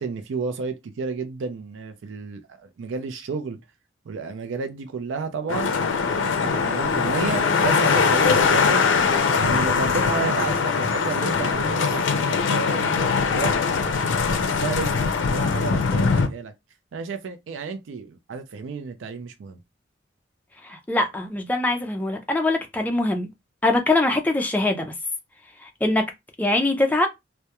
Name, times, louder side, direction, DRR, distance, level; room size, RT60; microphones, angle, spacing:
voice 1, 0.0-3.6 4.1-5.7 6.1-8.8 9.3-14.1 14.6-16.5 16.9-19.6, right 5 dB, 85° right, 0.4 m, -32 dB
sound 1, 5.5-16.3, left 5 dB, 80° left, 0.4 m, -21 dB
voice 2, 20.6-23.3 23.6-24.9 25.6-26.1 26.4-27.1, left 2 dB, 10° left, 0.3 m, -23 dB
2.2 x 2.1 x 2.8 m
head